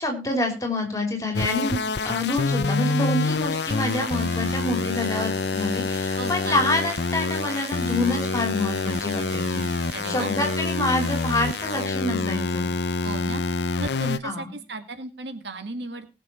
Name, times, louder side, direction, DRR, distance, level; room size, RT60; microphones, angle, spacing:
voice 1, 0.0-12.7 14.2-14.6, left 2 dB, 20° left, 3 dB, 3.5 m, -27 dB
sound 1, 1.3-14.2, left 3 dB, 70° left, 0.7 m, -26 dB
sound 2, 3.5-11.9, right 4 dB, 40° right, 4.5 m, -41 dB
voice 2, 6.2-6.7 9.9-10.3 13.0-13.4 13.8-16.1, right 2 dB, 75° right, 7 dB, 2.0 m, -35 dB
20.0 x 6.9 x 4.4 m, 0.31 s
head